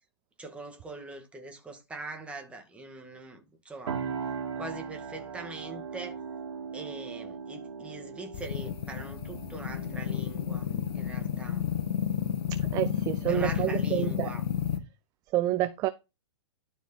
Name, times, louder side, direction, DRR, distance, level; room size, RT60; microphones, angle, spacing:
voice 1, 0.4-4.0 4.6-6.2 6.7-10.7 10.9-11.6 13.3-14.4, right 3 dB, 10° right, 1.7 m, -42 dB
sound 1, 3.9-13.6, right 6 dB, 75° right, 2.2 m, -40 dB
sound 2, 8.3-14.8, left 10 dB, 55° left, 1.4 m, -31 dB
voice 2, 12.7-14.3 15.3-15.9, right 14 dB, 25° right, 0.5 m, -28 dB
12.0 x 4.8 x 4.1 m
hypercardioid pair, 145°, 15 cm